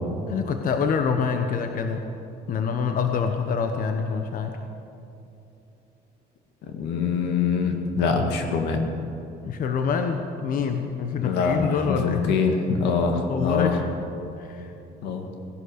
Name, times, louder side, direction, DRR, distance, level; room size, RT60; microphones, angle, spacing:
voice 1, 0.3-2.1 2.5-4.6 9.4-12.4 13.3-13.9 14.4-14.7, left 6 dB, 55° left, 6 dB, 1.0 m, -26 dB
voice 2, 6.7-8.8 11.2-13.8 15.0-15.3, left 5 dB, 90° left, 4 dB, 1.9 m, -24 dB
17.5 x 11.5 x 6.6 m, 2.8 s
cardioid pair, 110°, 17 cm